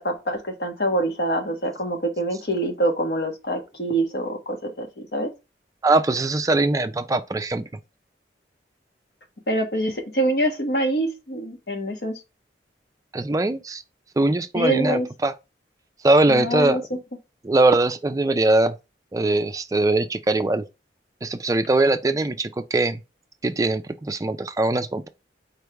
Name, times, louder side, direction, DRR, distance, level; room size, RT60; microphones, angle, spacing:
voice 1, 0.0-5.3 9.5-12.1 14.5-15.1 16.3-17.0, right 1 dB, 65° left, 1.2 m, -25 dB
voice 2, 5.8-7.6 13.1-13.8 14.2-15.3 16.0-16.9 17.4-18.8 19.1-20.7 21.2-23.0 23.4-25.1, right 2 dB, 20° right, 0.4 m, -21 dB
4.5 x 3.3 x 3.3 m
head